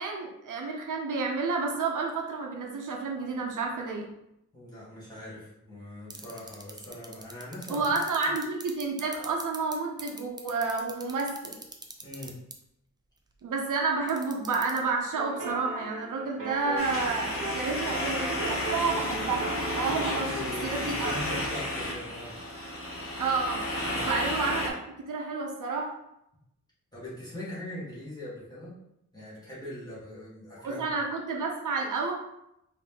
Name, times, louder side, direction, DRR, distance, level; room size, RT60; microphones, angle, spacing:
voice 1, 0.0-4.1 7.7-11.6 13.4-19.5 19.7-21.2 23.2-23.6 24.0-24.8 25.1-25.9 30.6-32.1, right 4 dB, 70° right, 1 dB, 0.7 m, -30 dB
voice 2, 4.5-8.0 12.0-12.3 20.1-22.3 23.8-24.1 26.9-28.7 29.1-30.9, left 1 dB, 10° left, -9 dB, 1.5 m, -41 dB
sound 1, 6.1-9.7 10.0-12.5 14.1-14.8, right 3 dB, 15° right, 0.3 m, -40 dB
sound 2, 15.1-20.4, right 2 dB, 45° right, 1.0 m, -38 dB
sound 3, 16.8-24.7, left 1 dB, 45° left, 0.9 m, -32 dB
4.2 x 2.8 x 3.4 m, 0.82 s
wide cardioid pair, 180°, 32 cm